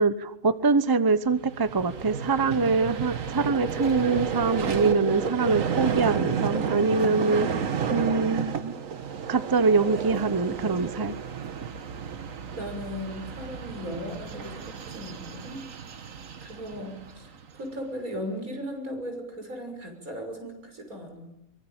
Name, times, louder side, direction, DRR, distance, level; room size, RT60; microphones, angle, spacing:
voice 1, 0.0-7.5 7.9-8.7 9.3-11.1, right 4 dB, 20° right, 12 dB, 0.9 m, -24 dB
Vehicle, 1.3-17.7, right 7 dB, 70° right, 1.6 m, -32 dB
voice 2, 12.5-15.6 15.9-16.2 16.4-21.3, equal, 85° right, 3 dB, 6.6 m, -37 dB
24.0 x 23.5 x 8.9 m, 0.89 s
omnidirectional pair, 1.4 m